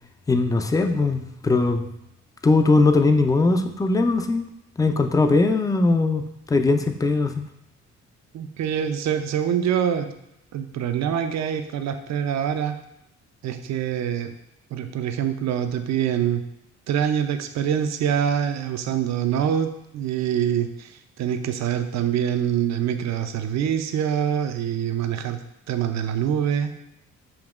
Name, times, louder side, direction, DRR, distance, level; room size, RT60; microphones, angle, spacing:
voice 1, 0.3-1.9 2.4-4.5 4.8-7.4, left 3 dB, 10° left, 7 dB, 0.3 m, -20 dB
voice 2, 8.3-10.1 10.5-12.8 13.4-14.4 14.7-16.4 16.9-25.4 25.7-26.7, right 9 dB, 65° right, 8 dB, 0.5 m, -25 dB
7.0 x 2.9 x 2.4 m, 0.84 s
cardioid pair, 90°, 30 cm